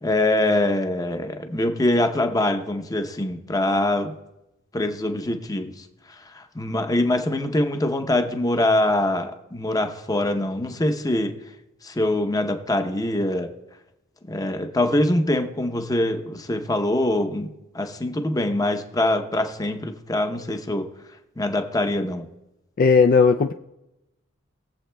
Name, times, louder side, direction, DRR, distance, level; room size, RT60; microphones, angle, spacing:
voice 1, 0.0-4.1 4.7-5.7 6.3-11.3 11.8-13.5 14.3-20.8 21.4-22.2, left 1 dB, 20° left, 6 dB, 0.7 m, -23 dB
voice 2, 22.8-23.5, left 5 dB, 45° left, 6 dB, 0.3 m, -16 dB
20.5 x 7.7 x 2.2 m, 0.92 s
head